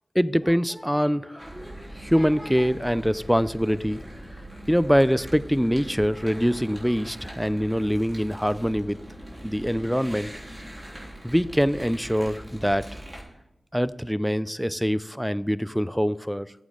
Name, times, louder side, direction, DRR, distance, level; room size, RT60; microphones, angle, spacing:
voice 1, 0.1-4.0 4.7-9.0 9.4-10.3 11.2-12.9 13.7-16.5, equal, ahead, 16 dB, 0.5 m, -24 dB
sound 1, 1.4-13.2, right 1 dB, 20° right, 3.7 m, -41 dB
13.0 x 8.3 x 3.9 m, 0.89 s
cardioid pair, 50°, 0 cm